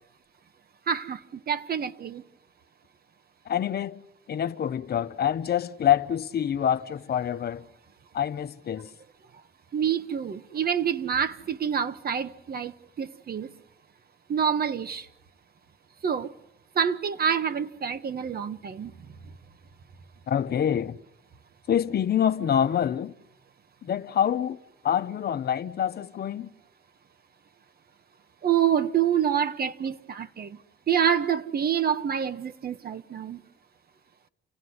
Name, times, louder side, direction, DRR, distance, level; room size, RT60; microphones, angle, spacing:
voice 1, 0.9-2.2 9.7-13.5 14.3-15.1 16.0-16.3 16.7-18.9 28.4-30.6 30.9-33.4, right 8 dB, 50° right, 1.4 m, -27 dB
voice 2, 3.5-4.0 4.3-7.6 8.1-8.9 20.3-21.0 21.7-23.1 23.8-24.6 24.8-26.5, left 9 dB, 55° left, 0.9 m, -26 dB
29.0 x 17.0 x 9.7 m
cardioid pair, 90°, 20 cm